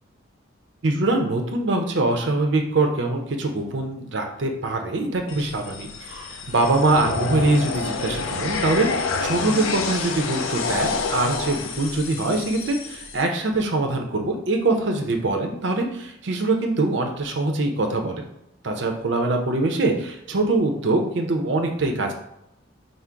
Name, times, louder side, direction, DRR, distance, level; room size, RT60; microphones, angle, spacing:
voice 1, 0.8-18.3 18.6-22.1, right 2 dB, 60° right, 4 dB, 0.6 m, -23 dB
sound 1, 5.3-13.2, left 4 dB, 80° left, 0.4 m, -28 dB
3.8 x 2.0 x 4.4 m, 0.81 s
head